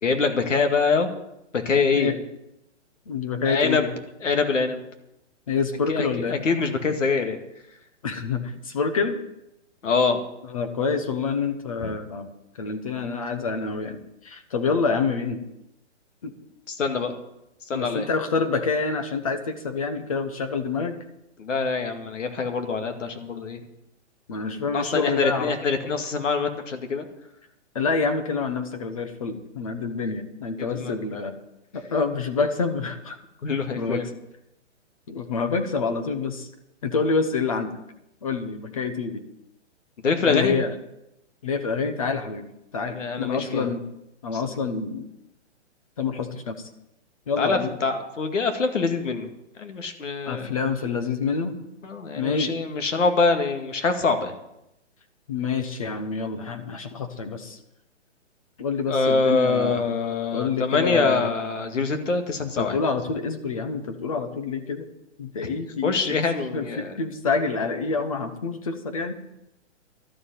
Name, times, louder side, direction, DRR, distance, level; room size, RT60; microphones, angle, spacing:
voice 1, 0.0-1.1 1.5-2.1 3.5-3.9 4.2-4.8 5.9-7.4 9.8-10.2 11.8-11.9 16.7-17.1 17.7-18.1 21.4-23.6 24.7-27.1 30.6-30.9 33.4-34.1 40.0-40.6 42.9-43.7 44.3-44.5 47.4-49.3 49.6-50.6 51.8-54.4 58.9-62.8 65.4-65.5 65.8-66.9, left 4 dB, 90° left, 6 dB, 2.1 m, -24 dB
voice 2, 3.1-3.9 5.5-6.4 8.0-9.2 10.5-12.3 12.6-15.4 16.2-16.3 17.7-21.0 24.3-25.5 27.7-31.4 31.7-33.2 33.8-34.0 35.1-36.5 36.8-37.8 38.2-39.2 40.2-40.7 41.4-42.5 42.7-43.8 44.2-45.1 46.0-46.7 47.3-47.7 50.3-51.6 52.2-52.5 55.3-57.6 58.6-59.8 60.3-61.3 62.4-64.9 65.2-66.0 66.5-69.1, left 4 dB, 30° left, 8 dB, 1.0 m, -27 dB
12.5 x 7.1 x 9.1 m, 0.87 s
hypercardioid pair, 180°, 36 cm